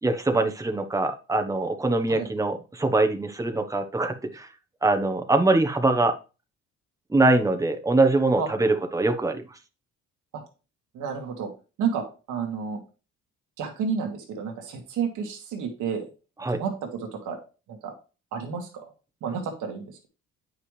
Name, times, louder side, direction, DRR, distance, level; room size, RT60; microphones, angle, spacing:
voice 1, 0.0-4.5 4.8-6.2 7.1-9.4 16.4-16.6, right 2 dB, 10° right, 5 dB, 1.2 m, -23 dB
voice 2, 10.9-11.5 11.8-12.8 13.6-16.0 16.5-17.4 17.7-17.9 18.3-18.9 19.2-19.9, right 6 dB, 85° right, 2 dB, 2.1 m, -31 dB
9.2 x 5.8 x 3.3 m, 0.32 s
cardioid pair, 90°, 30 cm